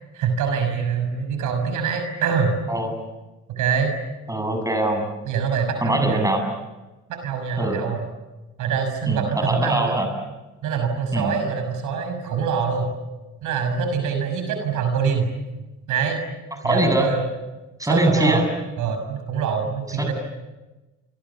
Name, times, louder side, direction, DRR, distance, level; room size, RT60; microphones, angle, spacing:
voice 1, 0.1-2.6 3.5-3.9 5.2-6.2 7.1-8.1 8.6-10.0 10.6-12.9 13.4-15.3 15.9-16.3 16.6-17.2 17.8-18.4 18.8-20.1, right 6 dB, 90° right, 6 dB, 6.3 m, -24 dB
voice 2, 4.3-5.1 5.8-6.4 7.6-7.8 9.1-10.1 11.1-11.3 16.6-17.1 17.8-18.4 20.0-20.1, right 1 dB, 10° right, 5 dB, 7.3 m, -22 dB
29.5 x 26.0 x 7.2 m, 1.1 s
cardioid pair, 90°, 30 cm